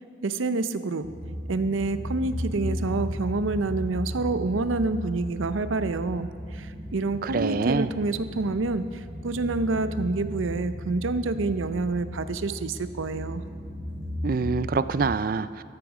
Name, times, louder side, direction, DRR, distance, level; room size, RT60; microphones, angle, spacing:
voice 1, 0.2-1.1 1.5-13.4, right 3 dB, 90° right, 12 dB, 0.6 m, -28 dB
sound 1, 1.0-15.1, equal, 65° right, 3.8 m, -36 dB
voice 2, 7.2-7.9 14.2-15.6, right 4 dB, 45° right, 14 dB, 0.4 m, -26 dB
13.5 x 11.0 x 4.9 m, 2.2 s
head